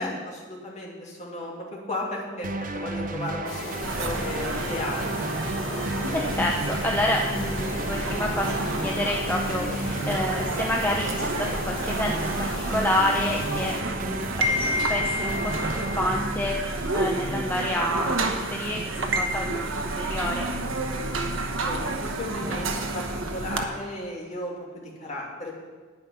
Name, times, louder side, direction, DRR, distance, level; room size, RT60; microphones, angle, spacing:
voice 1, 0.0-5.4 21.5-25.5, left 1 dB, 35° left, -3 dB, 2.4 m, -35 dB
sound 1, 2.4-16.2, right 2 dB, 40° right, 0.6 m, -33 dB
sound 2, 3.5-13.8, left 3 dB, 85° left, 1.2 m, -36 dB
sound 3, 3.8-23.6, right 2 dB, 80° right, 1.1 m, -30 dB
voice 2, 6.1-11.3 11.6-20.5, left 1 dB, 10° left, -1 dB, 0.7 m, -29 dB
9.6 x 9.4 x 5.8 m, 1.4 s
head